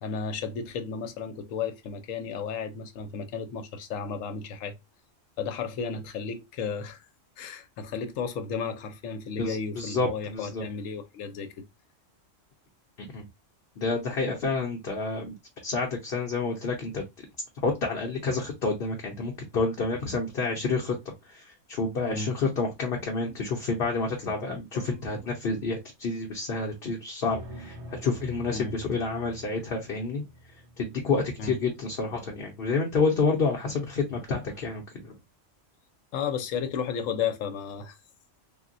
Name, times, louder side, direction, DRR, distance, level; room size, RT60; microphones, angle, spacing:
voice 1, 0.0-4.7 5.4-7.0 7.4-11.6 22.1-22.3 24.7-25.0 28.5-28.7 31.4-31.6 36.1-38.0, left 6 dB, 85° left, 1.0 m, -33 dB
voice 2, 9.4-10.7 13.0-13.2 13.8-15.4 15.6-17.0 17.6-20.9 21.3-30.2 30.8-35.1, left 4 dB, 55° left, 0.8 m, -29 dB
sound 1, 27.2-31.1 33.0-33.4 33.8-33.9 34.2-34.8, right 1 dB, 65° right, 1.3 m, -45 dB
3.8 x 2.1 x 2.5 m
omnidirectional pair, 1.3 m